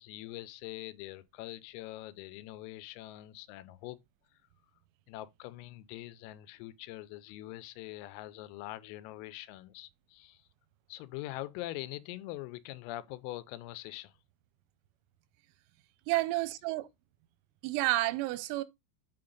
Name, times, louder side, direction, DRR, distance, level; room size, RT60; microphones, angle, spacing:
voice 1, 0.0-4.0 5.1-10.5 10.9-14.1, left 16 dB, 85° left, 3.3 m, -43 dB
voice 2, 16.1-16.9 17.6-18.6, right 18 dB, 90° right, 3.4 m, -30 dB
8.7 x 4.1 x 3.9 m
omnidirectional pair, 5.9 m